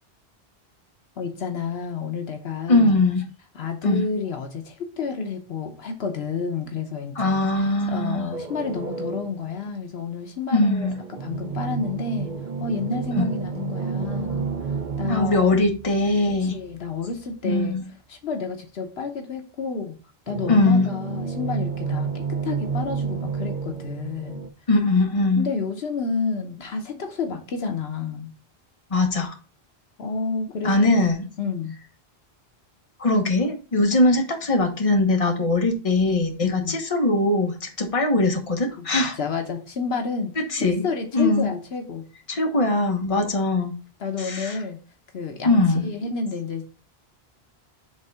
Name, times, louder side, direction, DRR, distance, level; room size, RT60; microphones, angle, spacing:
voice 1, 1.2-3.0 3.5-10.9 11.2-12.3 12.6-14.5 15.0-15.6 16.4-17.8 18.1-20.0 20.3-24.5 25.3-28.3 30.0-30.9 31.4-31.7 36.4-36.8 38.8-38.9 39.2-42.0 43.1-43.3 44.0-44.8 45.1-46.6, left 5 dB, 75° left, 5 dB, 1.1 m, -30 dB
voice 2, 2.7-3.2 3.8-4.0 7.2-8.3 10.5-11.0 13.2-13.3 15.1-16.5 17.4-17.8 20.5-20.9 24.7-25.5 28.9-29.4 30.6-31.2 33.0-39.2 40.5-40.9 41.1-41.5 42.3-43.7 44.2-44.6 45.4-45.9, left 2 dB, 35° left, 2 dB, 1.2 m, -21 dB
sound 1, 8.3-9.5 10.7-16.8 20.3-24.5, right 5 dB, 55° right, 0.7 m, -31 dB
5.2 x 3.7 x 5.5 m, 0.35 s
omnidirectional pair, 1.1 m